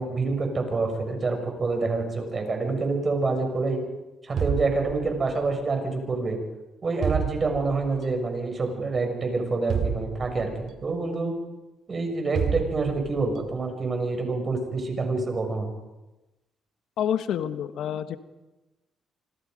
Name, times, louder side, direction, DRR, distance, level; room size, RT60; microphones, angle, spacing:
voice 1, 0.0-3.8 4.2-6.4 6.8-11.3 11.9-15.7, right 3 dB, 35° right, 4 dB, 6.9 m, -27 dB
sound 1, 4.4-5.5 7.0-8.0 9.7-10.8 12.4-13.3, right 7 dB, 65° right, 2.9 m, -29 dB
voice 2, 17.0-18.2, left 9 dB, 80° left, 10 dB, 1.3 m, -28 dB
26.5 x 26.0 x 5.3 m, 1.1 s
cardioid pair, 90°, 0 cm